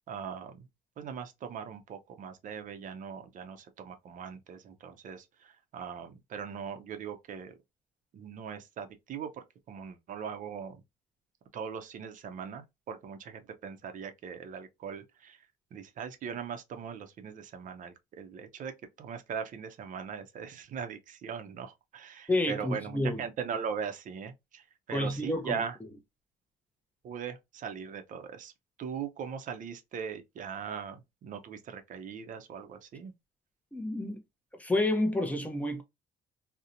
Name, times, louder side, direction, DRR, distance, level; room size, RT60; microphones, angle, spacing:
voice 1, 0.1-0.7 1.0-7.5 8.1-10.8 11.5-18.7 19.0-25.8 27.0-28.5 28.8-33.1, right 7 dB, 50° right, 0.5 m, -40 dB
voice 2, 22.3-23.2 24.9-25.6 33.7-34.2 34.6-35.8, left 1 dB, 10° left, 0.6 m, -29 dB
2.7 x 2.1 x 2.5 m
cardioid pair, 110°, 17 cm